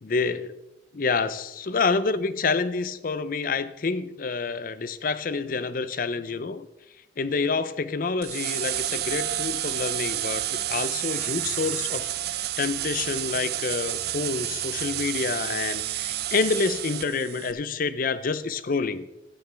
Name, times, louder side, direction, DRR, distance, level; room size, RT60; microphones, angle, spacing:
voice 1, 0.0-0.5 0.9-6.7 7.2-19.1, left 4 dB, 45° left, 14 dB, 0.5 m, -28 dB
sound 1, 8.2-17.5, right 13 dB, 55° right, 0.4 m, -30 dB
12.5 x 9.7 x 3.4 m, 0.93 s
head